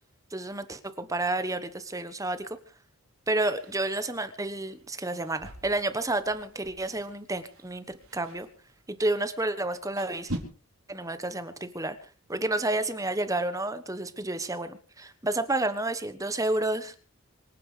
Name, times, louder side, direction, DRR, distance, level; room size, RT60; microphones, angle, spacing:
voice 1, 0.3-2.5 3.3-8.5 8.9-10.3 10.9-12.0 12.3-16.9, right 2 dB, 15° right, 11 dB, 1.2 m, -30 dB
sound 1, 3.5-10.4, right 1 dB, 75° right, 4.2 m, -45 dB
26.0 x 9.7 x 5.0 m, 0.39 s
head